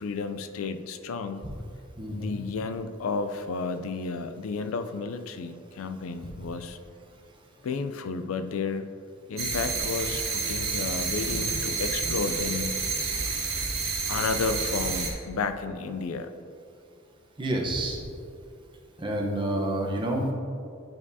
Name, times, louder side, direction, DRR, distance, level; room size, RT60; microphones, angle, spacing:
voice 1, 0.0-1.5 2.1-6.8 7.6-8.9 9.3-12.7 14.1-16.3, left 4 dB, 80° left, 9 dB, 0.4 m, -32 dB
voice 2, 2.0-2.4 17.4-18.0 19.0-20.3, right 1 dB, 25° right, 0 dB, 0.8 m, -28 dB
sound 1, 9.4-15.1, right 4 dB, 80° right, 1.7 m, -29 dB
10.5 x 4.8 x 2.7 m, 2.4 s
head